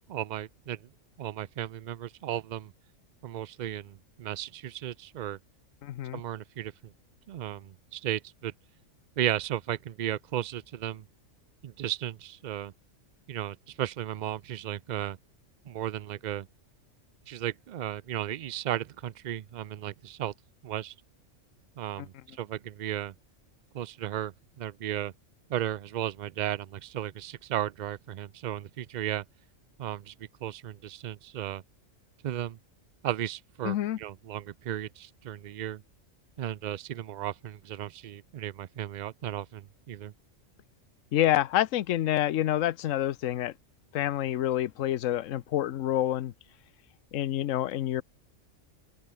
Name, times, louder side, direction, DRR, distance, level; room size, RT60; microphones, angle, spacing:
voice 1, 0.1-0.8 1.2-2.7 3.2-5.4 6.1-6.7 7.3-8.5 9.2-11.0 11.6-12.7 13.3-15.2 15.7-16.5 17.3-20.3 20.6-20.9 21.8-23.1 23.7-25.1 25.5-29.2 29.8-30.1 30.4-31.6 32.2-32.6 33.0-35.8 36.4-40.1, right 11 dB, 80° right, 0.4 m, -35 dB
voice 2, 5.8-6.2 22.0-22.1 33.6-34.0 41.1-43.5 43.9-46.3 47.1-48.0, left 13 dB, 80° left, 1.1 m, -27 dB
omnidirectional pair, 1.3 m